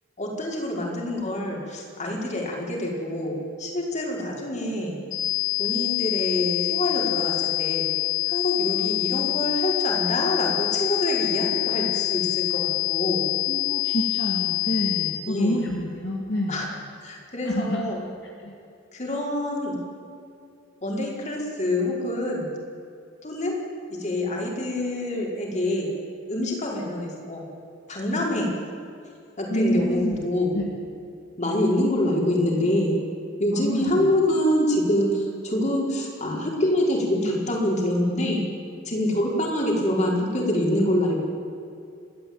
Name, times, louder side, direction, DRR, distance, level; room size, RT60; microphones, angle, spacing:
voice 1, 0.2-5.0 5.6-7.9 8.3-13.3 15.3-15.6 16.5-16.6 17.0-18.0 18.9-19.8 20.8-22.5 23.2-23.6 23.9-25.9 26.3-27.4 27.9-28.5 29.4-30.5 31.4-33.0 33.4-38.4 38.8-41.1, left 1 dB, 40° left, -1 dB, 4.9 m, -26 dB
sound 1, 5.1-15.1, left 23 dB, 85° left, 5.1 m, -26 dB
voice 2, 13.5-16.6 17.4-17.9 18.4-18.6 28.1-28.2 29.5-30.2 30.5-30.7 33.5-34.1, left 1 dB, 60° left, -1 dB, 2.3 m, -28 dB
30.0 x 13.0 x 8.9 m, 2.5 s
head